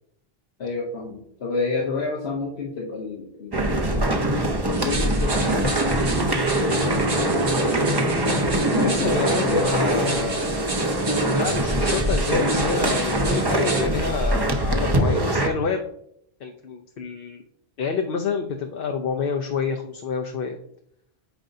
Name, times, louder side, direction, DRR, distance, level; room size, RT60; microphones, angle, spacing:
voice 1, 0.6-3.5 3.9-4.2 4.8-7.5 8.7-9.6, left 3 dB, 90° left, -2 dB, 1.3 m, -30 dB
sound 1, 3.5-15.5, right 1 dB, 25° right, 0.8 m, -23 dB
sound 2, 4.7-13.8, right 2 dB, 65° right, 1.6 m, -33 dB
voice 2, 8.6-10.5 11.2-15.8 16.4-17.5 17.8-20.6, left 5 dB, 65° left, 4 dB, 0.8 m, -28 dB
9.1 x 5.3 x 2.6 m, 0.71 s
omnidirectional pair, 1.0 m